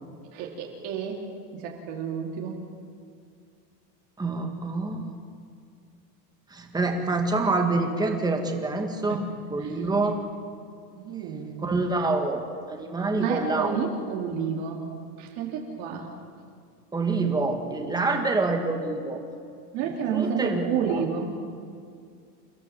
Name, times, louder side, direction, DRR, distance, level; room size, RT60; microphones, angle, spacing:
voice 1, 0.3-2.6 9.1-9.2 9.6-9.7 10.9-11.8 13.2-14.9 15.2-16.1 19.7-21.4, right 6 dB, 45° right, 0 dB, 3.1 m, -30 dB
voice 2, 4.2-5.1 6.5-9.2 9.5-10.2 11.6-13.8 16.9-19.2 19.8-21.0, right 3 dB, 10° right, 4 dB, 1.9 m, -27 dB
29.5 x 15.5 x 7.3 m, 2.2 s
supercardioid pair, 165°, 48 cm